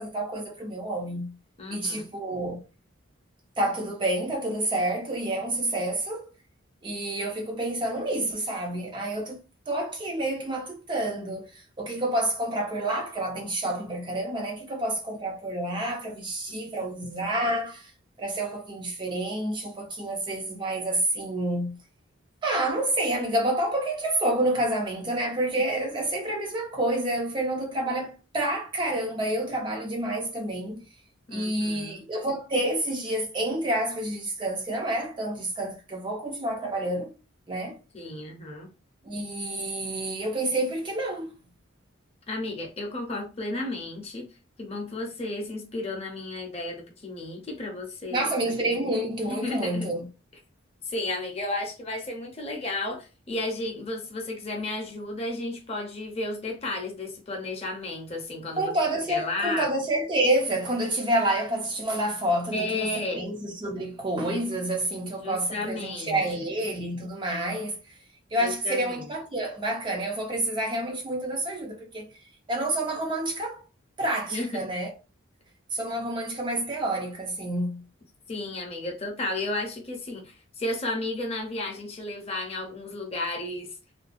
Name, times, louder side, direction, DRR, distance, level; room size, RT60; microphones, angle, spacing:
voice 1, 0.0-1.3 1.7-2.6 3.6-6.3 6.8-9.4 9.7-17.9 18.2-21.8 22.4-30.8 31.3-37.1 37.5-37.8 39.0-41.3 48.1-50.1 58.6-67.9 68.3-72.1 72.5-73.6 74.0-74.9 75.7-77.8, right 1 dB, 25° right, 0.4 m, -28 dB
voice 2, 1.6-2.1 16.8-17.0 31.3-32.0 37.9-38.7 42.3-44.3 44.6-48.9 49.3-49.9 50.8-58.7 59.1-59.6 62.5-63.2 65.2-66.2 68.4-69.1 74.3-74.7 78.3-83.8, left 2 dB, 30° left, 0.6 m, -33 dB
2.4 x 2.2 x 2.4 m
head